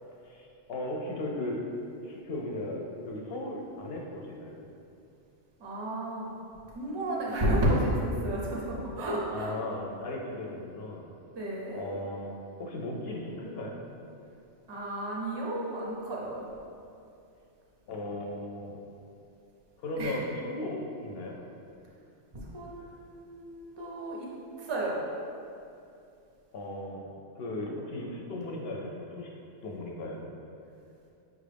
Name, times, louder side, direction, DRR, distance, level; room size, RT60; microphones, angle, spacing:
voice 1, 0.2-1.6 2.0-4.6 9.3-11.1 11.7-13.8 17.9-18.8 19.8-21.4 26.5-29.3 29.6-30.2, left 1 dB, 65° left, -1 dB, 0.7 m, -36 dB
voice 2, 5.6-6.4 6.7-9.6 11.3-11.8 14.7-16.5 20.0-20.2 22.5-24.3 24.6-25.0, right 1 dB, 30° right, -3 dB, 0.5 m, -31 dB
5.8 x 2.4 x 3.3 m, 2.6 s
omnidirectional pair, 1.2 m